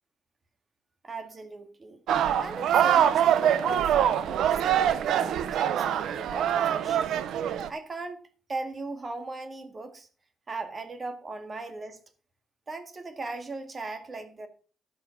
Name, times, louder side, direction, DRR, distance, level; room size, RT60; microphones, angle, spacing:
voice 1, 1.0-2.0 2.4-7.2 7.7-8.2 8.5-10.1 10.5-12.0 12.7-14.5, right 3 dB, 35° right, 1.9 m, -38 dB
sound 1, 2.1-7.7, right 10 dB, 75° right, 0.8 m, -24 dB
13.5 x 5.6 x 5.0 m
cardioid pair, 90°, 0 cm